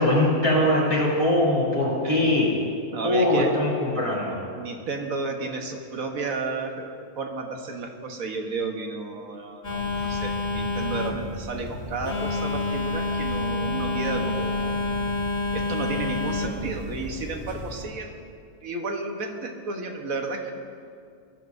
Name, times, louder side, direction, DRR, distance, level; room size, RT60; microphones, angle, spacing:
voice 1, 0.0-2.5 3.0-4.4, left 1 dB, 20° right, -8 dB, 3.3 m, -21 dB
voice 2, 2.9-3.5 4.6-14.8 15.5-18.2 18.6-20.5, right 3 dB, 65° right, 2 dB, 1.6 m, -32 dB
Telephone, 9.6-17.8, left 2 dB, 30° left, 1.7 m, -28 dB
22.0 x 12.0 x 2.7 m, 2.3 s
omnidirectional pair, 1.6 m